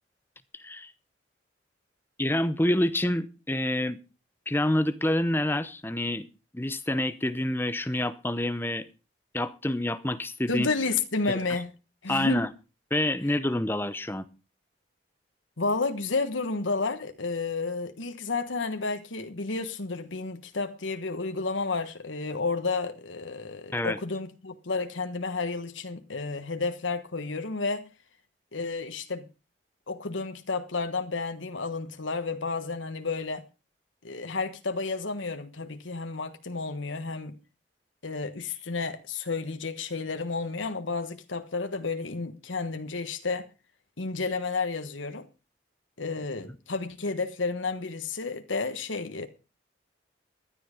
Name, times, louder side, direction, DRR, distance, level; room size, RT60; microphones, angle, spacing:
voice 1, 0.5-0.9 2.2-4.0 4.5-6.3 6.5-8.9 9.3-10.7 11.3-11.4 12.1-12.5 12.9-14.3 23.7-24.0, left 1 dB, 10° left, 0.7 m, -27 dB
voice 2, 10.5-11.7 12.0-12.5 15.6-27.9 28.5-29.3 29.9-33.4 34.0-37.4 38.0-43.5 44.0-45.3 46.0-49.3, left 4 dB, 85° left, 1.3 m, -31 dB
15.0 x 10.5 x 5.1 m
head